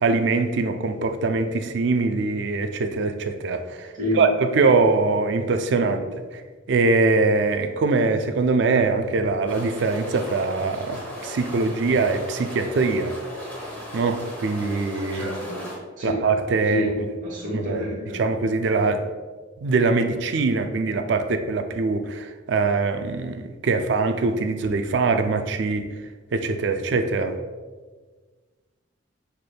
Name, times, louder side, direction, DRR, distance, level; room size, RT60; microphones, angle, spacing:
voice 1, 0.0-6.0 6.7-13.1 13.9-15.3 16.0-16.9 17.5-17.8 18.1-19.0 19.6-25.8 26.3-27.3, right 3 dB, 60° right, 7 dB, 0.3 m, -23 dB
sound 1, 9.5-15.8, equal, 10° left, 0.8 m, -37 dB
voice 2, 15.1-15.7 16.0-16.2 16.7-16.9 17.2-18.2, left 1 dB, 40° right, -5 dB, 1.0 m, -28 dB
5.8 x 3.3 x 2.2 m, 1.4 s
head